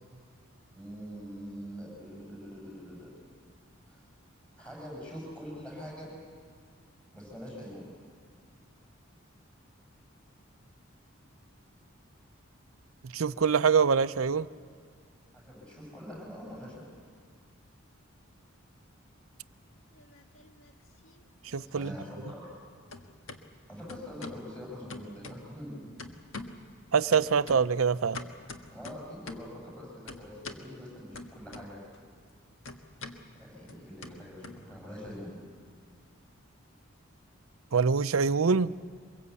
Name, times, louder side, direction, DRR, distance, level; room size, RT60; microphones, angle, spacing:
voice 1, 0.7-3.1 3.9-4.0 4.6-6.1 7.1-7.9 15.3-16.9 21.7-22.5 23.7-25.8 28.7-31.8 33.3-35.3, equal, 5° left, -3 dB, 6.9 m, -44 dB
voice 2, 13.1-14.5 21.5-21.9 26.9-28.2 37.7-38.7, right 5 dB, 80° right, 14 dB, 0.6 m, -24 dB
sound 1, 19.8-20.7 21.0-22.6 22.9-23.4 23.9-24.5 24.9-25.7 26.0-26.7 27.1-29.6 30.1-30.7 31.1-32.0 32.2-35.1, left 3 dB, 65° left, 1.6 m, -45 dB
24.5 x 22.5 x 8.3 m, 2.1 s
head